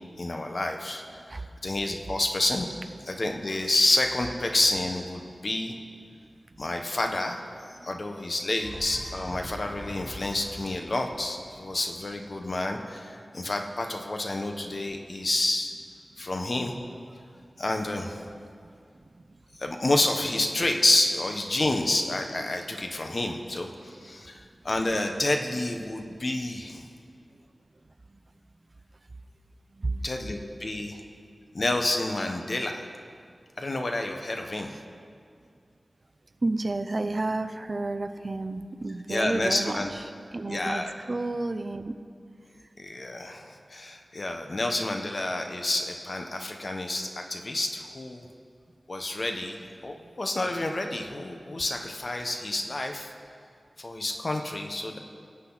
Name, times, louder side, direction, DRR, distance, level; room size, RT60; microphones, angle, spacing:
voice 1, 0.2-1.0 1.3-2.7 3.1-5.7 6.6-7.4 7.8-15.7 16.2-16.8 17.6-18.3 19.6-26.9 30.0-31.0 31.5-32.9 33.6-34.7 39.1-39.9 40.5-40.9 42.8-48.3 48.9-53.1 53.8-55.0, left 2 dB, 50° left, 4 dB, 1.2 m, -29 dB
sound 1, 8.4-12.5, equal, 5° left, 1.9 m, -43 dB
voice 2, 18.9-19.4 24.0-24.2 28.1-28.2 29.7-30.3 34.7-34.8 36.4-40.0 40.3-41.9 50.0-50.1, right 2 dB, 45° right, 9 dB, 0.6 m, -32 dB
22.5 x 8.3 x 4.1 m, 2.3 s
wide cardioid pair, 80°, 0 cm